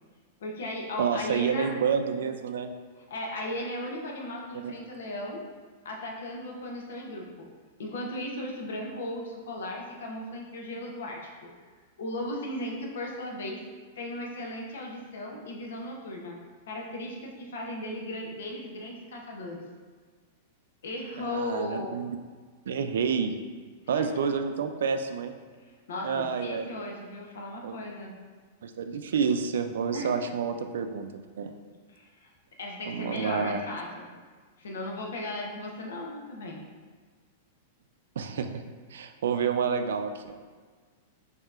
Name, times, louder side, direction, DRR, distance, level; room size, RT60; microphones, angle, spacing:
voice 1, 0.4-1.7 3.1-5.4 5.8-7.5 7.8-11.5 12.0-13.6 14.0-16.4 16.7-19.6 20.8-22.0 24.2-24.3 25.9-28.1 29.9-30.1 31.9-32.3 32.6-34.2 34.6-36.6, left 1 dB, 90° left, 0 dB, 0.8 m, -36 dB
voice 2, 1.0-2.7 4.6-4.7 21.2-22.1 22.7-23.4 23.9-25.3 26.0-26.7 27.6-27.8 28.6-31.1 31.4-31.5 32.9-33.6 38.2-38.6 38.9-40.4, right 6 dB, 90° right, 7 dB, 0.3 m, -29 dB
5.5 x 2.8 x 2.4 m, 1.5 s
supercardioid pair, 175°, 0 cm